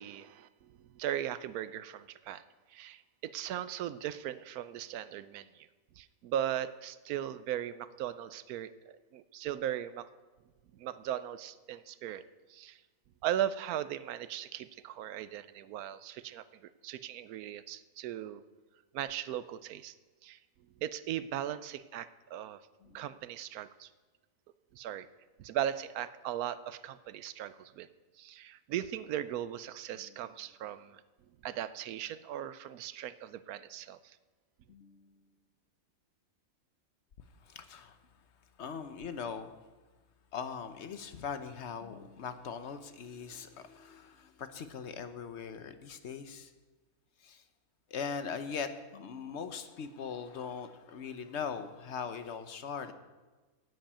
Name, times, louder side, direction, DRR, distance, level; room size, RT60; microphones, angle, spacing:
voice 1, 0.0-2.4 2.7-5.7 6.0-10.1 10.7-12.2 12.5-12.8 13.2-16.4 16.8-18.4 18.9-19.9 20.2-20.4 20.8-22.6 22.9-23.9 24.7-25.1 25.4-27.9 28.2-31.0 31.4-34.2, right 11 dB, 85° right, 14 dB, 1.1 m, -38 dB
voice 2, 34.7-35.2 37.4-38.0 38.6-39.6 40.3-46.5 47.2-47.4 47.9-52.9, left 6 dB, 55° left, 9 dB, 1.0 m, -41 dB
10.5 x 7.9 x 8.8 m, 1.3 s
omnidirectional pair, 1.5 m